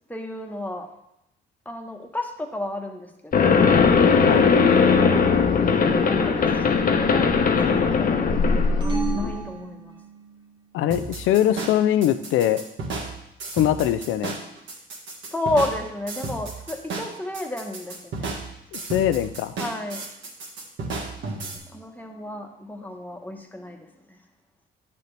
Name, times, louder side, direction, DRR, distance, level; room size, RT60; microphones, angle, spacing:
voice 1, 0.1-0.9 1.6-3.6 5.7-6.5 6.9-10.0 15.3-18.3 19.6-20.0 21.2-24.2, left 1 dB, 10° left, 3 dB, 1.2 m, -32 dB
sound 1, 3.3-9.4, left 5 dB, 45° left, 0.9 m, -19 dB
sound 2, 8.8-10.5, right 5 dB, 20° right, 1.4 m, -32 dB
voice 2, 10.7-12.6 13.5-14.3 18.7-19.5, left 11 dB, 90° left, 12 dB, 0.5 m, -22 dB
sound 3, 10.9-21.6, right 3 dB, 70° right, 1.8 m, -33 dB
9.5 x 6.8 x 3.3 m, 0.82 s
cardioid pair, 90°, 20 cm